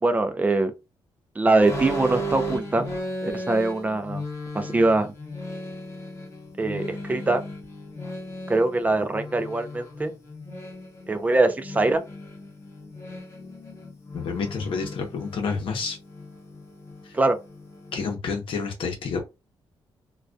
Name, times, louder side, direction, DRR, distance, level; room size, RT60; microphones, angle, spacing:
voice 1, 0.0-0.7 1.4-2.9 3.2-4.2 4.5-5.1 6.6-7.4 8.5-10.1 11.1-12.0 17.1-17.4, right 2 dB, 15° right, 0.4 m, -22 dB
sound 1, 1.6-18.1, equal, 30° left, 0.7 m, -36 dB
voice 2, 14.1-16.0 17.0-17.2 17.9-19.2, left 5 dB, 70° left, 0.7 m, -29 dB
2.3 x 2.2 x 2.5 m
wide cardioid pair, 145°, 9 cm